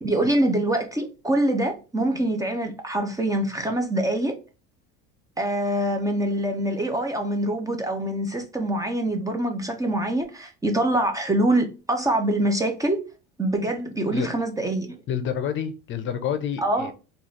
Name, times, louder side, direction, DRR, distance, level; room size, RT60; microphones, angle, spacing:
voice 1, 0.0-4.3 5.4-13.0 13.4-15.0 16.6-16.9, right 1 dB, 10° right, 0.5 m, -24 dB
voice 2, 15.1-16.9, left 8 dB, 40° left, 0.6 m, -28 dB
3.7 x 2.4 x 3.1 m
cardioid pair, 125°, 29 cm